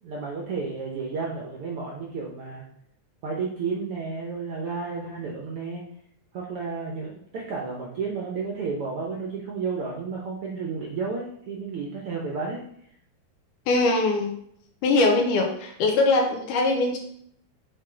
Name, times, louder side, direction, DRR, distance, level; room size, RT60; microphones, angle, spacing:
voice 1, 0.0-2.6 3.2-5.8 6.3-12.6, right 4 dB, 70° right, -2 dB, 1.4 m, -32 dB
voice 2, 13.7-14.3 14.8-17.0, left 2 dB, 90° left, 2 dB, 2.5 m, -22 dB
7.1 x 3.9 x 3.8 m, 0.68 s
omnidirectional pair, 3.6 m